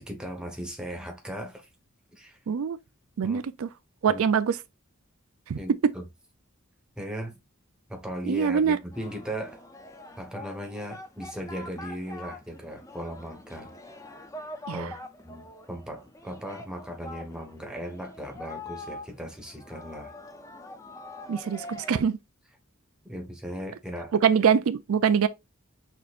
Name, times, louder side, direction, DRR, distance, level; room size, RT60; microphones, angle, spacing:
voice 1, 0.0-1.7 2.2-2.4 3.2-3.4 4.1-4.2 5.6-6.0 7.0-7.4 7.9-9.6 10.2-13.8 14.7-14.9 15.2-20.1 21.9-22.1 23.0-24.1, equal, 5° right, 1.2 m, -37 dB
voice 2, 2.5-2.8 3.2-3.7 4.0-4.6 5.5-5.6 8.2-8.8 14.7-14.9 21.3-22.2 24.1-25.3, right 7 dB, 85° right, 0.4 m, -24 dB
Singing, 8.9-22.0, left 1 dB, 15° left, 0.6 m, -44 dB
6.0 x 2.9 x 2.5 m
head